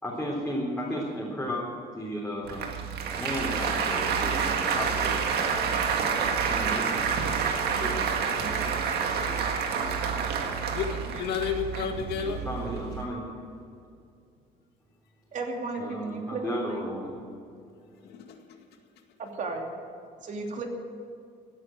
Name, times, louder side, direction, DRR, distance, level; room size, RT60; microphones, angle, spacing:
voice 1, 0.0-1.6 1.9-2.7 3.1-5.2 6.0-7.1 7.4-8.1 12.2-13.2 15.8-17.1, equal, 5° left, -6 dB, 3.7 m, -34 dB
Applause, 2.4-13.0, right 6 dB, 70° right, 1.8 m, -28 dB
voice 2, 10.7-12.4 18.0-18.4, left 7 dB, 75° left, 4 dB, 2.1 m, -31 dB
voice 3, 15.3-17.0 19.2-19.7 20.2-20.7, right 3 dB, 45° right, 2 dB, 2.9 m, -34 dB
16.0 x 9.6 x 8.9 m, 2.4 s
cardioid pair, 110°, 17 cm